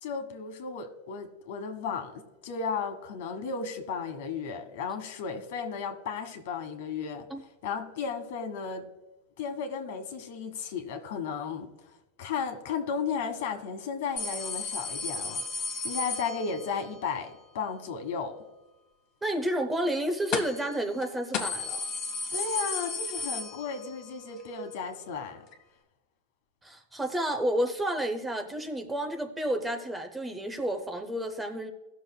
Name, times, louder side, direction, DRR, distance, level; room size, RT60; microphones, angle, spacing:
voice 1, 0.0-7.2 7.6-8.8 9.4-11.7 12.2-18.3 22.3-25.4, left 5 dB, 65° left, 7 dB, 1.3 m, -34 dB
sound 1, 14.2-16.9 20.3-20.7 21.0-21.1 21.3-24.1 24.4-24.5 25.5-25.6, left 4 dB, 35° left, 1.0 m, -34 dB
voice 2, 19.2-21.8 26.6-31.7, right 1 dB, 5° right, 6 dB, 0.6 m, -30 dB
17.0 x 6.6 x 2.2 m, 1.0 s
supercardioid pair, 155°, 0 cm